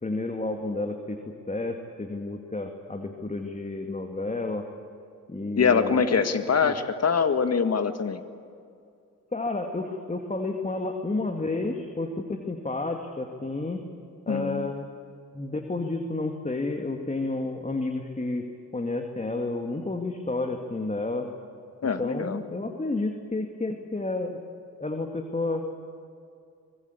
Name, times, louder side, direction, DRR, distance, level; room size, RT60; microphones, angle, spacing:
voice 1, 0.0-4.7 5.3-6.3 6.6-6.7 9.3-13.8 14.3-14.9 15.3-18.5 18.7-21.3 21.8-24.4 24.8-25.7, left 2 dB, 20° left, 4 dB, 2.2 m, -31 dB
voice 2, 5.6-8.2 14.3-14.7 21.8-22.4, left 6 dB, 40° left, 9 dB, 1.8 m, -24 dB
24.0 x 19.5 x 8.4 m, 2.4 s
hypercardioid pair, 45°, 38 cm